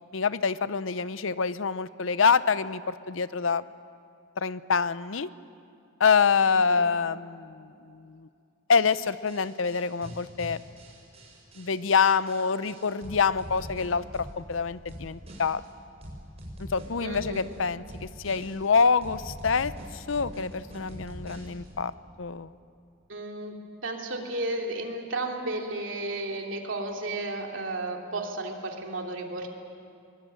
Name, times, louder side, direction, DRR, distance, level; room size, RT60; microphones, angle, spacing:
voice 1, 0.1-3.6 4.4-5.3 6.0-8.3 8.7-10.6 11.6-15.6 16.6-21.9 22.2-22.5, left 5 dB, 75° left, 15 dB, 0.7 m, -26 dB
voice 2, 6.5-6.9 17.0-17.4 23.1-23.5 23.8-29.5, right 2 dB, 70° right, 1 dB, 3.0 m, -33 dB
sound 1, 8.9-14.6 14.9-15.7 16.0-17.6 17.9-18.7 19.0-21.7, equal, 30° right, 6.5 m, -43 dB
23.0 x 22.0 x 9.1 m, 2.5 s
head